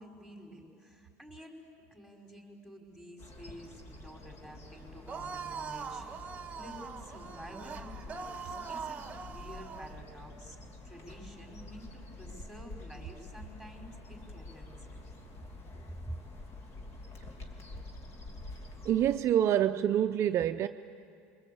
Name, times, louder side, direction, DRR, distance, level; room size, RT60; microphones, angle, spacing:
voice 1, 0.0-1.6 1.9-10.6 10.8-15.0 16.1-16.2, equal, 5° left, 0 dB, 5.2 m, -49 dB
cadernera ingrid laura, 3.2-19.2, left 2 dB, 45° left, 3.1 m, -48 dB
sound 1, 5.1-10.0, right 5 dB, 20° right, 1.2 m, -42 dB
voice 2, 18.9-20.7, right 10 dB, 45° right, 7 dB, 0.6 m, -26 dB
27.5 x 23.5 x 8.6 m, 2.5 s
supercardioid pair, 115°, 7 cm